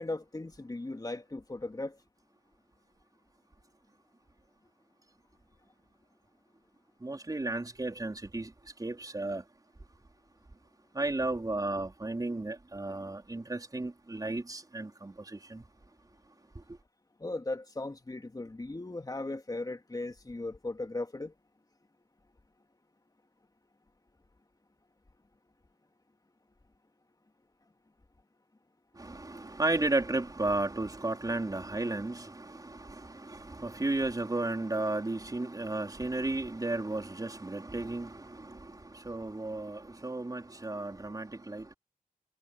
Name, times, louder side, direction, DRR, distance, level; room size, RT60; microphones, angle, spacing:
voice 1, 0.0-2.0 17.2-21.3, left 2 dB, 25° left, 2.6 m, -37 dB
voice 2, 7.0-9.5 10.9-15.6 16.5-16.8 28.9-41.7, right 2 dB, 25° right, 4.4 m, -34 dB
cardioid pair, 55°, 14 cm